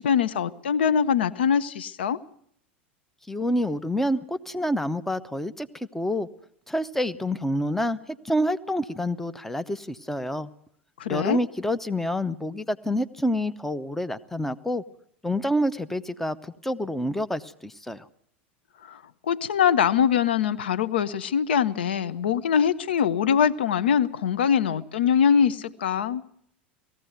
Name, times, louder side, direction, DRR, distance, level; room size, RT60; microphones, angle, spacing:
voice 1, 0.0-2.2 11.0-11.4 18.9-19.0 19.3-26.2, left 7 dB, 70° left, 13 dB, 0.8 m, -23 dB
voice 2, 3.3-6.3 6.7-10.5 11.1-14.8 15.2-18.1, equal, 5° left, 13 dB, 0.8 m, -28 dB
18.5 x 15.0 x 9.2 m, 0.67 s
figure-of-eight pair, 85°, 6 cm